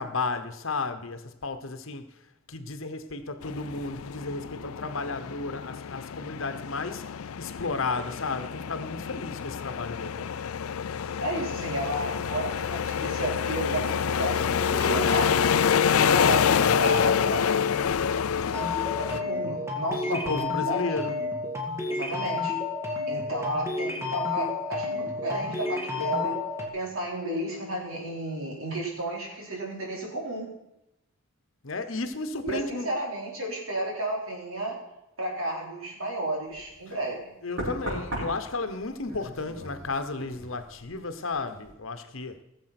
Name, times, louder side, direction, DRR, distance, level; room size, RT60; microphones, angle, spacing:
voice 1, 0.0-2.0 2.5-10.4 19.9-21.2 31.6-32.9 37.4-42.4, left 3 dB, 65° left, 1.1 m, -33 dB
sound 1, 3.4-19.2, left 7 dB, 90° left, 0.5 m, -27 dB
voice 2, 11.2-15.5 16.0-17.6 19.0-20.8 21.9-22.5 23.1-26.4 26.7-30.5 32.4-34.8 35.2-37.4, right 1 dB, 75° right, 4.2 m, -32 dB
sound 2, 18.5-26.7, left 4 dB, 15° right, 2.1 m, -31 dB
Knock, 36.5-36.7 37.6-41.1 41.3-41.7, equal, 55° right, 6.0 m, -37 dB
18.0 x 7.4 x 6.0 m
head